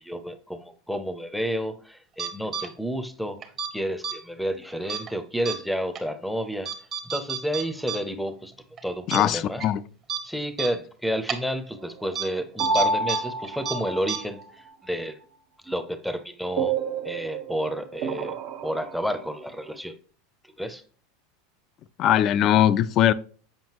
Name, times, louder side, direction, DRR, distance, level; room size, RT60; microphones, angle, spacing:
voice 1, 0.0-3.4 3.7-6.8 7.0-8.5 8.8-9.6 10.2-15.2 15.6-16.8 17.0-20.0 20.4-20.8, equal, ahead, 0.6 m, -30 dB
sound 1, 2.2-2.7 3.4-3.7 4.0-4.1 4.9-5.1 5.4-5.5 5.9-6.0 6.6-8.0 8.3-8.4 8.8-8.9 9.1-9.2 9.6-9.7 10.1-10.2 10.6-10.7 11.3-11.4 12.1-12.2 12.6-13.2 13.4-13.7 14.1-14.2, right 8 dB, 35° right, 0.9 m, -30 dB
voice 2, 9.1-9.8 22.0-23.1, left 11 dB, 45° left, 0.3 m, -20 dB
sound 2, 12.6-14.4 16.6-19.3, right 3 dB, 55° right, 0.7 m, -29 dB
7.5 x 5.1 x 2.9 m
supercardioid pair, 120°, 0 cm